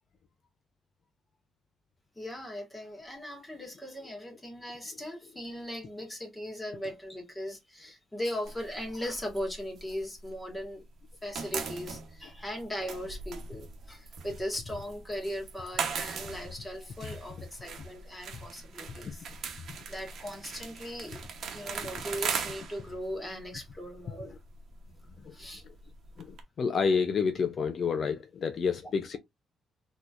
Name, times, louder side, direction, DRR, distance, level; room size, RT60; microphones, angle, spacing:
voice 1, 2.2-10.8 11.2-19.2 19.9-21.2 21.5-24.3 25.3-25.6, equal, 10° left, 1.8 m, -38 dB
sound 1, 8.5-10.7 11.0-26.4, right 6 dB, 65° right, 1.0 m, -40 dB
voice 2, 26.2-29.2, left 5 dB, 55° left, 0.5 m, -29 dB
4.0 x 3.0 x 2.5 m
cardioid pair, 90°, 0 cm